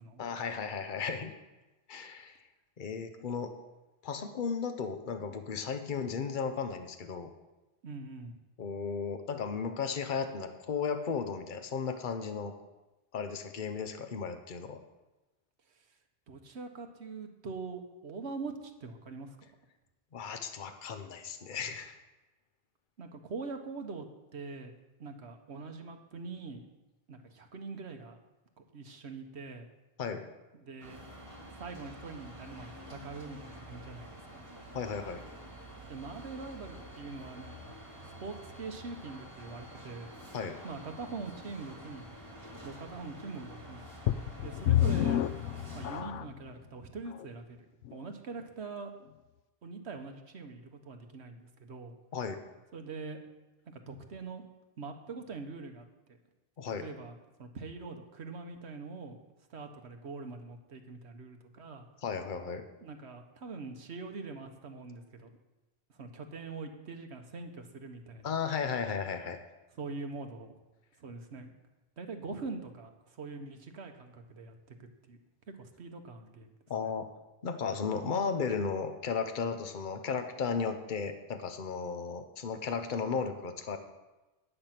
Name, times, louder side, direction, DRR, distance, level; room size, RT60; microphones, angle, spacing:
voice 1, 0.2-1.3 1.9-2.4 2.8-3.5 4.0-7.3 8.6-12.5 13.1-14.8 20.1-22.0 30.0-30.3 34.7-35.3 40.3-40.6 52.1-52.4 56.6-56.9 62.0-62.6 68.2-69.4 76.7-77.1 77.4-83.8, left 5 dB, 45° left, 7 dB, 1.0 m, -35 dB
voice 2, 7.8-8.4 16.3-18.5 18.8-19.5 23.0-24.1 24.3-24.7 25.0-26.6 27.1-28.2 28.7-29.7 30.5-31.0 31.6-34.5 35.9-37.7 38.0-40.1 40.6-42.1 42.6-43.9 44.4-45.3 45.7-47.6 47.9-48.9 49.6-52.0 52.7-53.2 53.7-54.4 54.8-56.2 56.8-59.2 59.5-61.8 62.8-65.3 66.0-68.3 69.8-70.5 71.0-71.5 72.0-72.9 73.2-74.5 74.8-75.2 75.5-76.5 76.8-76.9, right 4 dB, 70° right, 5 dB, 1.3 m, -43 dB
sound 1, 30.8-46.0, equal, 25° right, 2.2 m, -48 dB
sound 2, 44.1-46.5 47.1-47.2 47.8-47.9, left 12 dB, 90° left, 0.9 m, -29 dB
10.5 x 8.8 x 5.9 m, 1.1 s
omnidirectional pair, 1.2 m